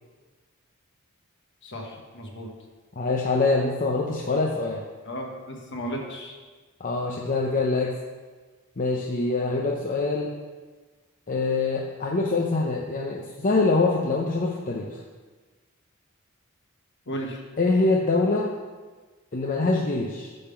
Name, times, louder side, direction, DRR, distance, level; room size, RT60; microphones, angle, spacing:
voice 1, 1.6-2.5 5.0-6.3 17.1-17.4, equal, 55° left, 1 dB, 1.4 m, -34 dB
voice 2, 3.0-4.8 6.8-7.9 8.8-10.3 11.3-15.0 17.6-18.5 19.3-20.3, left 3 dB, 40° left, -1 dB, 0.7 m, -24 dB
9.3 x 3.8 x 6.9 m, 1.4 s
head